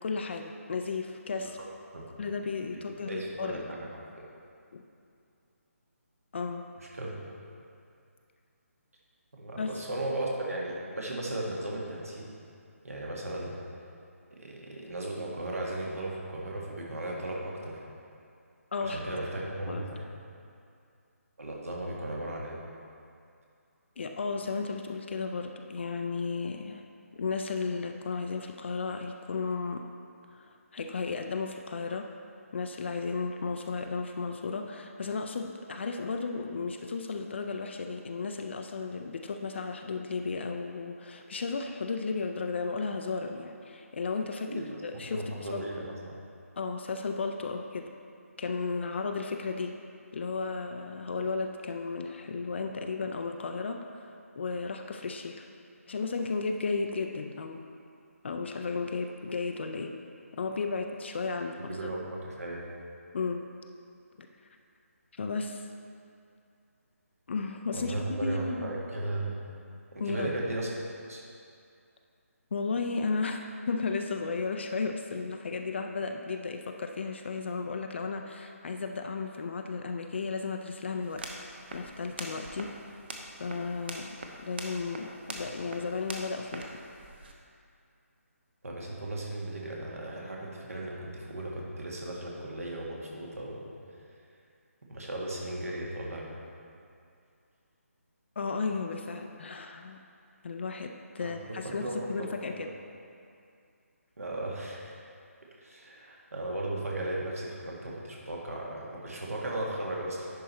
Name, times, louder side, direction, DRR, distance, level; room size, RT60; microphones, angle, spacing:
voice 1, 0.0-1.6 2.2-3.6 4.7-4.8 6.3-6.7 9.6-9.8 18.7-19.0 19.7-19.9 24.0-26.8 27.1-29.9 30.3-30.5 30.7-32.1 32.5-45.6 46.6-47.9 48.4-49.8 50.1-55.5 55.9-57.6 58.2-60.0 60.3-61.8 63.1-63.4 64.2-64.3 65.1-65.7 67.3-68.7 70.0-70.3 72.5-81.3 81.7-82.7 83.4-84.1 84.5-86.7 98.4-100.0 100.4-102.7, left 4 dB, 50° left, 4 dB, 0.4 m, -34 dB
voice 2, 2.7-3.8 4.1-4.3 6.9-7.2 9.4-12.3 12.8-13.5 14.3-17.8 18.8-20.0 21.4-22.6 44.5-46.1 61.7-62.7 67.7-69.4 69.9-71.2 88.6-93.7 94.9-96.3 101.2-102.3 104.2-105.0 105.6-110.3, right 1 dB, 70° right, -3 dB, 1.8 m, -36 dB
sound 1, 81.0-87.3, right 2 dB, 45° right, 0.8 m, -43 dB
10.5 x 4.6 x 4.1 m, 2.4 s
figure-of-eight pair, 150°, 8 cm